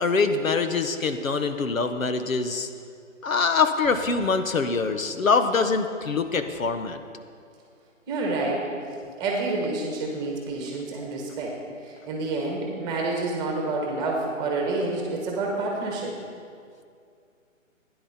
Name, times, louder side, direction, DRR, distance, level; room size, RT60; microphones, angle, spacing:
voice 1, 0.0-2.7 3.2-7.0, left 4 dB, 80° left, 8 dB, 1.2 m, -24 dB
voice 2, 8.1-8.7 9.2-11.6 11.8-16.1, right 2 dB, 10° right, -1 dB, 1.4 m, -28 dB
16.5 x 10.0 x 4.4 m, 2.3 s
hypercardioid pair, 155°, 40 cm